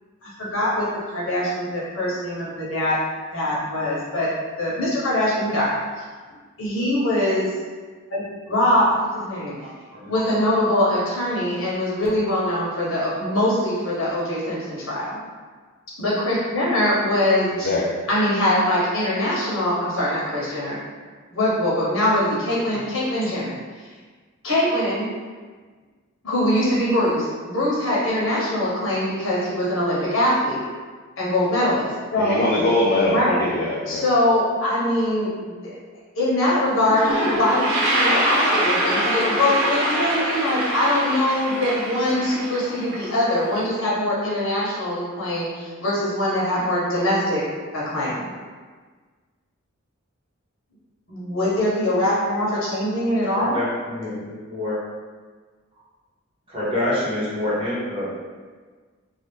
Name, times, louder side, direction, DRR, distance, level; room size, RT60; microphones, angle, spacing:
voice 1, 0.2-3.0 3.3-4.3 4.6-5.8 6.6-7.5 8.1-8.8 9.2-9.5 10.1-15.2 16.0-17.5 18.1-20.8 21.3-23.9 24.4-25.1 26.2-30.6 31.2-32.4 33.1-33.5 33.9-35.7 36.2-47.4 47.7-48.3 51.1-53.6, left 1 dB, 80° left, -6 dB, 1.1 m, -22 dB
voice 2, 17.6-18.0 32.2-34.0, left 1 dB, 45° left, -5 dB, 0.4 m, -22 dB
Toilet flush, 36.5-36.6 36.8-43.6, equal, 75° right, 0.7 m, -24 dB
voice 3, 53.3-54.8 56.5-58.1, left 1 dB, 30° right, -9 dB, 1.0 m, -26 dB
2.8 x 2.4 x 3.4 m, 1.5 s
head